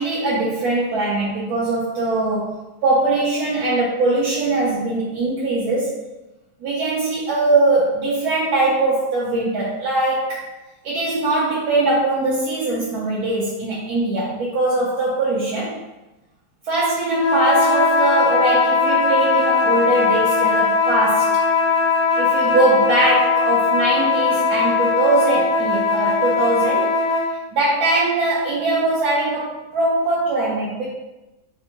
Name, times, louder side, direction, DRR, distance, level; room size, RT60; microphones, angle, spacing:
voice 1, 0.0-6.0 6.6-10.5 10.8-15.8 16.6-21.4 22.2-26.9 27.5-30.9, right 2 dB, 75° right, -6 dB, 1.1 m, -21 dB
sound 1, 17.1-27.3, left 4 dB, 70° left, 0.4 m, -19 dB
3.5 x 2.5 x 2.8 m, 1.0 s
omnidirectional pair, 1.7 m